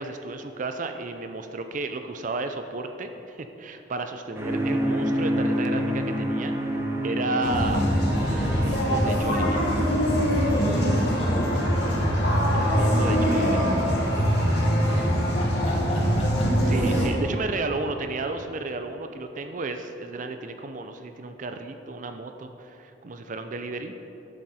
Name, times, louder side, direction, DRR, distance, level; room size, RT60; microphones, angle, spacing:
voice 1, 0.0-6.5 7.0-7.8 8.2-9.6 12.5-13.6 16.6-23.9, right 3 dB, 45° right, 7 dB, 0.5 m, -33 dB
sound 1, 4.3-15.0, equal, 15° right, 0.9 m, -30 dB
sound 2, 7.4-17.1, equal, 60° left, 1.8 m, -23 dB
voice 2, 10.9-11.8 14.0-14.5 14.8-16.5 16.9-17.2, equal, 35° left, -2 dB, 1.8 m, -35 dB
12.5 x 7.6 x 4.2 m, 3.0 s
head